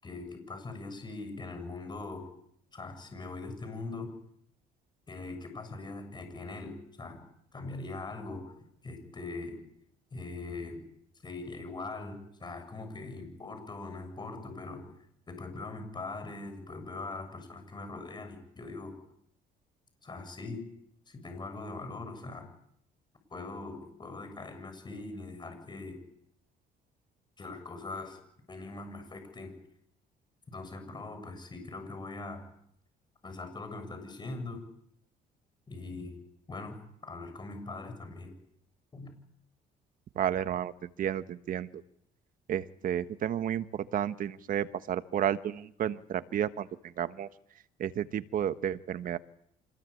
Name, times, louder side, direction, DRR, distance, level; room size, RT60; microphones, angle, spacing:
voice 1, 0.0-2.3 2.7-4.1 5.1-7.3 7.5-8.5 8.8-9.6 10.1-10.8 11.2-14.9 15.3-19.0 20.0-20.7 21.1-22.5 23.3-26.0 27.4-28.2 28.5-29.6 30.5-32.5 33.2-34.7 35.7-36.2 36.5-38.4 38.9-39.1, left 3 dB, 25° left, 7 dB, 7.1 m, -41 dB
voice 2, 40.1-41.8 42.5-47.3 47.8-49.2, right 10 dB, 55° right, 12 dB, 1.3 m, -32 dB
26.0 x 20.5 x 8.6 m, 0.72 s
cardioid pair, 110°, 17 cm